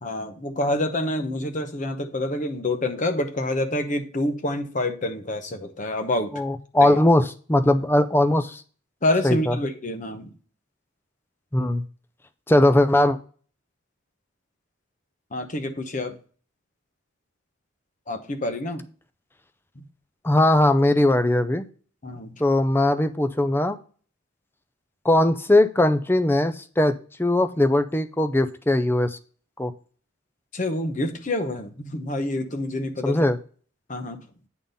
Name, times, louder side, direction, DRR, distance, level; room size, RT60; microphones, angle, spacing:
voice 1, 0.0-6.4 6.8-7.0 9.0-10.3 15.3-16.2 18.1-18.9 19.8-19.9 22.0-22.4 30.5-33.2 33.9-34.3, left 1 dB, 40° left, 7 dB, 0.9 m, -27 dB
voice 2, 6.3-8.6 9.2-9.5 11.5-11.8 12.5-13.2 20.2-21.6 22.4-23.8 25.0-29.2 29.6-29.7 33.0-33.4, left 1 dB, 10° left, 10 dB, 0.5 m, -20 dB
8.6 x 3.9 x 5.3 m, 0.41 s
head